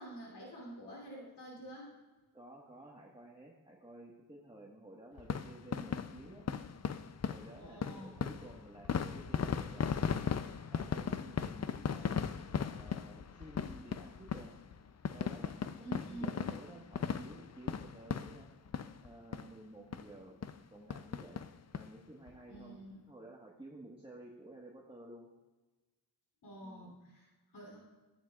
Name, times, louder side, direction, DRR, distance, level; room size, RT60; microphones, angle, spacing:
voice 1, 0.0-1.9 7.5-8.2 15.8-16.4 22.5-23.0 26.4-27.8, right 1 dB, 80° left, -3 dB, 3.3 m, -48 dB
voice 2, 2.3-6.5 7.3-10.2 10.7-12.1 12.6-14.6 15.1-18.5 19.0-20.4 20.7-21.5 21.7-22.8 23.1-25.3 26.6-27.0, right 1 dB, 15° right, -3 dB, 1.5 m, -53 dB
sound 1, 5.2-19.1 19.3-19.5 19.9-20.0 20.4-20.6 20.9-21.9 22.3-22.4 22.5-22.6, left 7 dB, 40° left, 0.5 m, -37 dB
14.0 x 10.5 x 2.4 m, 1.2 s
cardioid pair, 50°, 40 cm